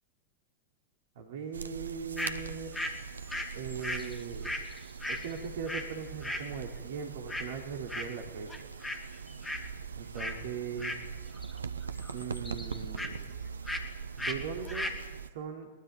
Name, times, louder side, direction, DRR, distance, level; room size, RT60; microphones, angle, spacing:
voice 1, 1.1-2.7 3.5-4.5 5.1-8.7 9.9-10.9 12.1-13.3 14.2-14.9 15.3-15.7, right 6 dB, 55° right, 3 dB, 3.3 m, -39 dB
sound 1, 1.5-15.3, right 6 dB, 75° right, 0.8 m, -42 dB
sound 2, 2.2-2.4 2.7-5.9 6.2-6.5 7.3-7.6 7.9-8.2 8.5-9.0 9.3-9.7 10.2-10.4 10.8-11.6 11.8-13.1 13.7-13.9 14.2-14.4 14.7-15.0, left 1 dB, 10° left, 2.6 m, -37 dB
22.0 x 20.5 x 9.5 m, 1.1 s
figure-of-eight pair, 90°, 0 cm